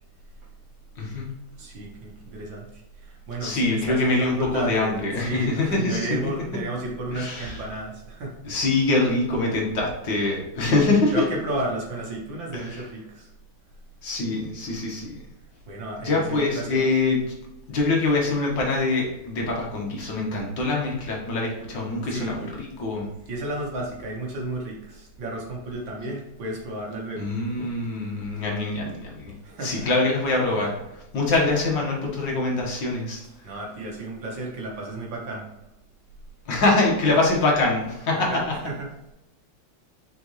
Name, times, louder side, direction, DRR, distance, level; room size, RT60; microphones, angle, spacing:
voice 1, 1.0-1.3 3.4-6.1 7.1-7.6 8.4-11.1 12.5-12.8 14.0-15.1 16.0-17.3 17.7-23.1 27.2-29.3 29.6-30.7 31.1-33.2 36.5-38.3, left 2 dB, 65° left, -1 dB, 2.2 m, -24 dB
voice 2, 1.6-8.3 10.6-10.8 11.1-13.3 15.7-16.9 22.1-22.4 23.3-27.3 27.6-27.7 29.4-29.9 30.5-30.7 33.4-35.5 38.3-39.1, right 1 dB, 70° right, -2 dB, 2.3 m, -32 dB
6.1 x 5.4 x 3.2 m, 0.90 s
omnidirectional pair, 2.2 m